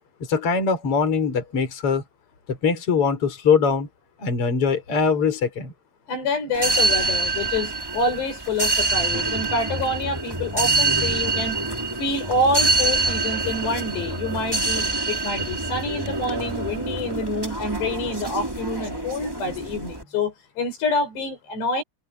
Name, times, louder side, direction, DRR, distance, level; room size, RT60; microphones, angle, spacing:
voice 1, 0.3-2.0 2.5-3.9 4.2-5.7, left 5 dB, 35° left, 5.5 m, -22 dB
voice 2, 6.1-11.6 12.0-21.8, left 2 dB, 75° left, 8.8 m, -27 dB
sound 1, 6.5-20.0, right 3 dB, 5° right, 2.8 m, -25 dB
omnidirectional pair, 4.9 m